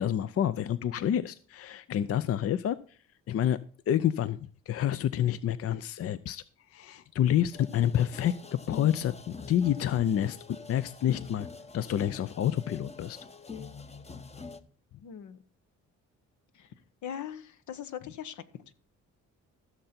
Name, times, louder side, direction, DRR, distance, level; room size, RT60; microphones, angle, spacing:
voice 1, 0.0-2.8 3.3-3.6 3.9-6.4 6.7-8.3 8.7-11.5 11.7-13.2, left 10 dB, 50° left, 16 dB, 0.5 m, -28 dB
sound 1, 7.5-14.6, left 4 dB, 20° left, 0.8 m, -45 dB
voice 2, 15.0-15.4 16.5-16.7 17.0-18.4, left 9 dB, 75° left, 12 dB, 1.1 m, -40 dB
15.5 x 6.7 x 4.3 m, 0.43 s
cardioid pair, 90°, 30 cm